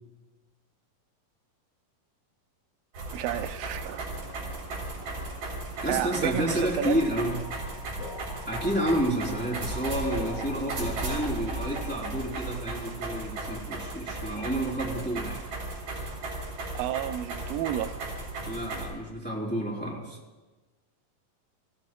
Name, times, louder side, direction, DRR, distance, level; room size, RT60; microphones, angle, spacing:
sound 1, 2.9-18.9, right 2 dB, 70° right, 5.0 m, -36 dB
voice 1, 3.1-4.1 5.9-7.0 16.7-17.9, right 12 dB, 85° right, 9 dB, 2.2 m, -31 dB
sound 2, 3.6-12.3, left 3 dB, 75° left, 4.4 m, -46 dB
voice 2, 5.8-7.4 8.5-15.4 18.4-20.2, right 1 dB, 5° left, -5 dB, 2.8 m, -30 dB
19.5 x 16.0 x 2.3 m, 1.2 s
omnidirectional pair, 4.0 m